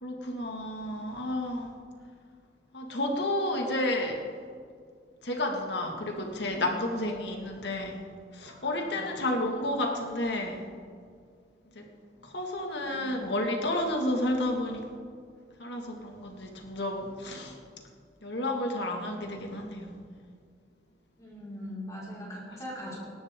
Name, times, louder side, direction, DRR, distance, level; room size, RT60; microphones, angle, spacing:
voice 1, 0.0-1.7 2.7-4.2 5.2-8.0 8.3-10.7 11.7-11.9 12.2-14.9 15.6-17.6 18.2-20.2, left 1 dB, 80° left, 2 dB, 2.0 m, -31 dB
voice 2, 8.4-9.0 12.7-13.4 21.2-23.0, equal, 20° left, -7 dB, 5.1 m, -42 dB
25.5 x 12.5 x 3.8 m, 2.2 s
head